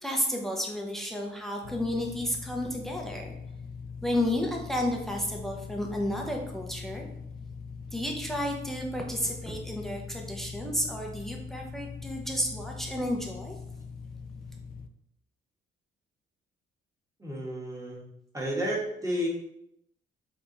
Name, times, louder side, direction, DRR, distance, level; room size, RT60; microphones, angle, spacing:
voice 1, 0.0-3.3 4.0-7.1 7.9-13.6, left 1 dB, ahead, 1 dB, 0.7 m, -32 dB
sound 1, 1.6-14.9, left 5 dB, 45° left, 0.4 m, -42 dB
voice 2, 17.2-18.0 18.3-19.3, equal, 15° right, -3 dB, 1.4 m, -31 dB
3.4 x 3.4 x 3.9 m, 0.78 s
cardioid pair, 90°, 20 cm